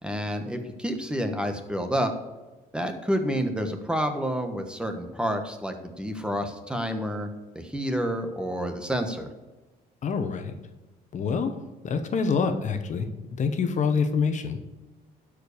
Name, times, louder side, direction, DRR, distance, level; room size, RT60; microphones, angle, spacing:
voice 1, 0.0-2.1 2.7-7.3 7.5-9.3, equal, 5° right, 6 dB, 1.3 m, -29 dB
voice 2, 10.0-10.5 11.1-11.6 11.8-13.1 13.4-14.6, left 5 dB, 45° left, 7 dB, 1.1 m, -26 dB
12.0 x 5.1 x 6.6 m, 1.1 s
cardioid pair, 110°, 17 cm